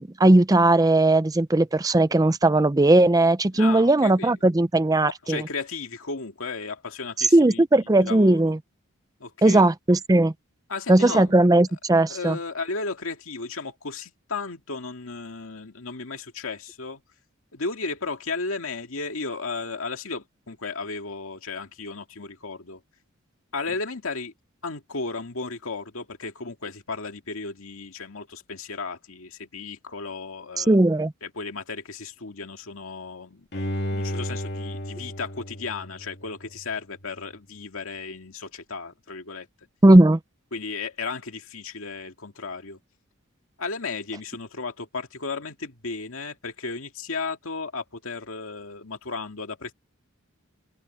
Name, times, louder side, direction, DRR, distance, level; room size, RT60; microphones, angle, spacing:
voice 1, 0.0-5.4 7.3-8.6 9.4-10.3 10.9-12.4 30.6-31.1 39.8-40.2, right 2 dB, 15° right, 0.5 m, -18 dB
voice 2, 3.5-4.3 5.0-8.5 9.2-9.6 10.7-11.3 12.1-17.0 17.5-22.8 23.5-24.3 24.6-30.8 31.2-33.5 33.9-39.5 40.5-42.8 43.6-49.7, left 4 dB, 75° left, 2.1 m, -34 dB
Bowed string instrument, 33.5-36.6 37.1-37.2, equal, 50° left, 2.7 m, -33 dB
open air
head